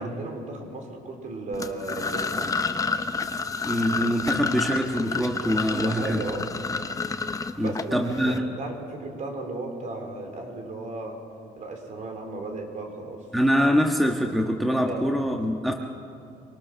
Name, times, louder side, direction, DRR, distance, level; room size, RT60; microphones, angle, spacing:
voice 1, 0.0-2.6 5.7-6.4 7.6-11.2 11.6-13.3 14.8-15.1, right 2 dB, 45° right, 4 dB, 3.8 m, -35 dB
sound 1, 1.5-8.4, left 4 dB, 20° left, 0.9 m, -30 dB
voice 2, 3.6-6.2 7.6-8.3 13.3-15.7, equal, ahead, 2 dB, 1.4 m, -24 dB
24.0 x 18.5 x 6.4 m, 2.5 s
cardioid pair, 110°, 17 cm